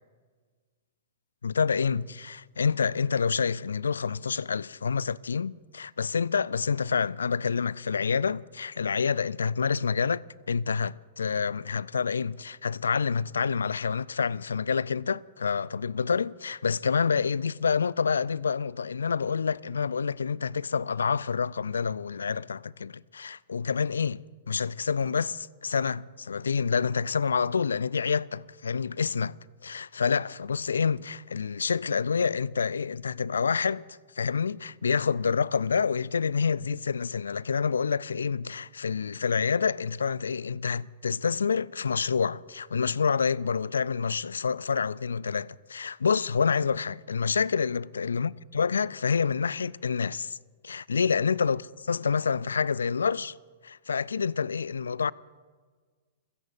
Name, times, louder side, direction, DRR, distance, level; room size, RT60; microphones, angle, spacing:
voice 1, 1.4-29.4 29.6-33.8 34.2-50.4 50.6-51.6 51.9-53.3 53.6-55.1, left 5 dB, 80° left, 0.3 m, -28 dB
30.0 x 16.5 x 2.6 m
figure-of-eight pair, 110°, 0 cm